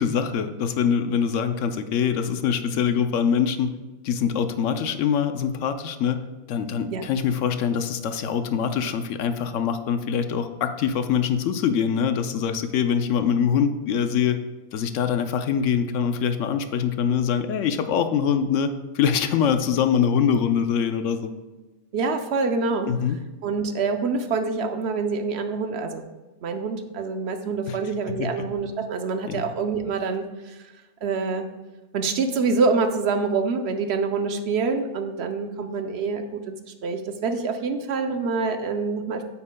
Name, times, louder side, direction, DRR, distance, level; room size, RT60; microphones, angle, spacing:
voice 1, 0.0-3.7 4.0-6.2 6.5-14.4 14.7-21.3 22.9-23.2 27.7-27.8 28.1-28.3 29.3-29.5, left 7 dB, 70° left, 9 dB, 0.9 m, -24 dB
voice 2, 21.9-22.9 23.4-26.0 26.4-30.6 31.0-31.4 31.9-36.6 36.8-39.2, right 4 dB, 60° right, 7 dB, 0.8 m, -26 dB
9.0 x 8.5 x 2.2 m, 1.2 s
omnidirectional pair, 1.4 m